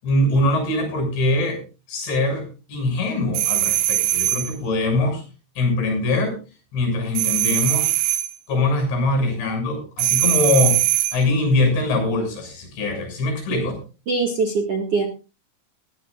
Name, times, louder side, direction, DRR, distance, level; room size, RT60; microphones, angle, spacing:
voice 1, 0.0-1.6 1.9-5.2 5.6-6.4 6.7-7.9 8.5-13.8, left 2 dB, 70° left, 5 dB, 8.9 m, -22 dB
sound 1, 3.3-4.5 7.1-8.3 10.0-11.2, right 14 dB, 85° right, 3.3 m, -21 dB
voice 2, 14.1-15.0, right 4 dB, 45° right, 2 dB, 2.2 m, -22 dB
21.0 x 14.5 x 2.5 m, 0.33 s
omnidirectional pair, 5.2 m